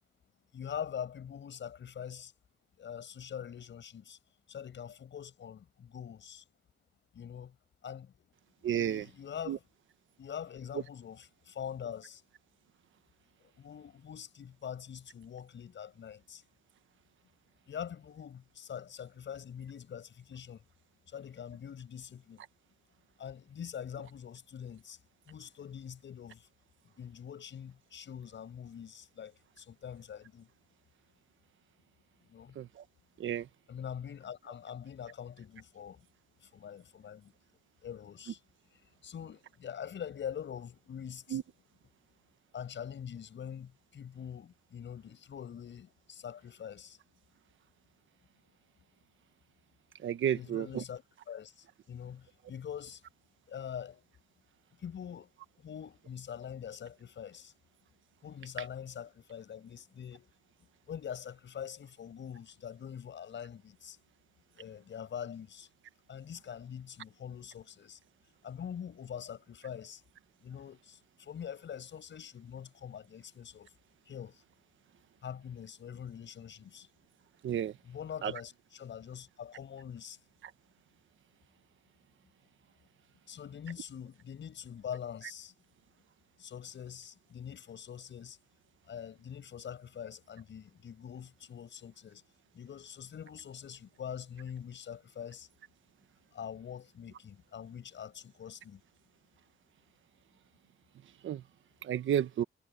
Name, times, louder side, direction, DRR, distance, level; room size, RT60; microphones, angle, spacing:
voice 1, 0.5-2.3 2.8-4.2 4.5-6.4 7.1-7.6 7.8-8.3 8.7-9.6 10.2-12.2 13.6-16.4 17.7-20.6 21.1-22.4 23.2-25.0 25.3-26.5 27.0-30.5 32.3-32.6 33.7-36.1 36.4-37.3 37.8-38.4 39.0-41.4 42.5-47.0 50.3-53.0 53.5-54.0 54.8-55.3 55.6-57.5 58.2-60.3 60.9-64.0 64.5-65.7 66.1-68.0 68.4-70.0 70.4-73.7 74.1-74.4 75.2-76.9 77.8-80.2 83.3-85.5 86.4-88.4 88.9-92.2 92.5-95.5 96.3-98.8, left 8 dB, 75° left, 6.7 m, -44 dB
voice 2, 8.6-9.1 9.5-9.6 32.5-32.8 33.2-33.5 41.3-41.4 50.0-50.8 77.4-77.8 78.2-78.3 101.2-101.4 101.8-102.4, right 10 dB, 85° right, 1.2 m, -31 dB
cardioid pair, 100°, 20 cm